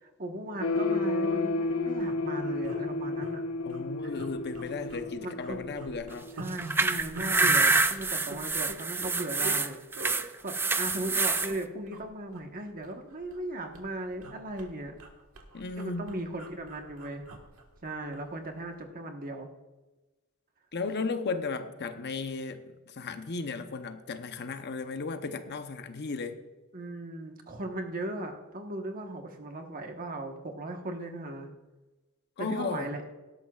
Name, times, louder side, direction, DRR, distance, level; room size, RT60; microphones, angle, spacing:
voice 1, 0.0-3.4 4.0-4.2 5.2-5.7 6.3-9.8 10.4-14.9 15.8-17.2 17.8-19.5 26.7-31.5 32.4-33.0, right 1 dB, 40° right, 1.3 m, -37 dB
sound 1, 0.6-6.4, left 3 dB, 85° left, 0.8 m, -32 dB
sound 2, 1.2-1.4 1.6-1.7 1.9-2.2 2.6-3.3 3.7-3.8 4.2-5.1 5.4-9.6 10.0-10.2 10.8-11.6 11.9-12.1 12.3-13.5 13.7-18.3 18.6-18.8, right 1 dB, 70° right, 1.5 m, -44 dB
voice 2, 3.6-6.3 15.5-16.1 20.7-26.4 32.4-32.9, left 4 dB, 50° left, 0.8 m, -35 dB
sound 3, 6.5-11.5, right 3 dB, 10° right, 0.4 m, -26 dB
17.0 x 12.5 x 2.4 m
head